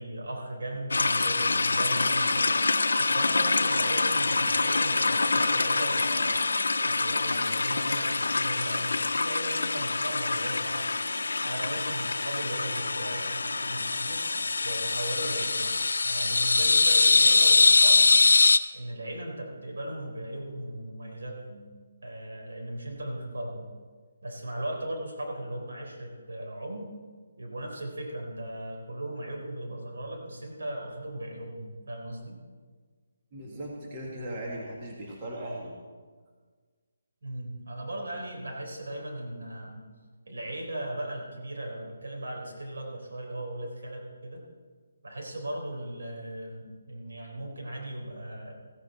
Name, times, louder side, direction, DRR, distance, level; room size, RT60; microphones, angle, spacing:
voice 1, 0.0-2.6 3.0-6.5 6.8-10.9 11.4-14.2 14.6-15.7 16.0-18.1 18.7-21.7 22.0-23.7 24.2-26.9 27.4-32.4 37.2-39.9 40.3-44.4 45.0-48.5, right 1 dB, 80° right, 0 dB, 3.8 m, -37 dB
sound 1, 0.9-18.6, left 3 dB, 85° left, 0.6 m, -24 dB
voice 2, 33.3-35.8, right 1 dB, 25° right, -2 dB, 1.8 m, -38 dB
15.5 x 9.5 x 4.3 m, 1.5 s
hypercardioid pair, 160°, 0 cm